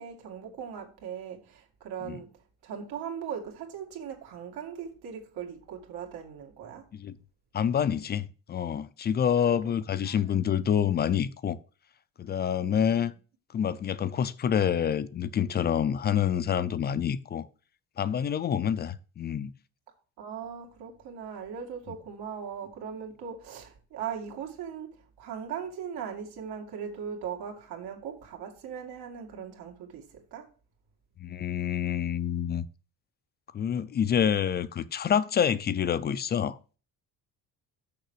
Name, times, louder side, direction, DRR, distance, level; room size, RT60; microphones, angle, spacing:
voice 1, 0.0-2.3 2.6-6.8 9.4-9.7 10.0-10.4 12.8-13.1 20.2-30.5, right 7 dB, 80° right, 2.3 m, -39 dB
voice 2, 7.5-11.6 12.2-13.1 13.5-17.5 18.0-19.5 31.2-32.7 33.5-36.6, left 8 dB, 30° left, 0.4 m, -27 dB
6.6 x 5.9 x 6.3 m
cardioid pair, 170°, 38 cm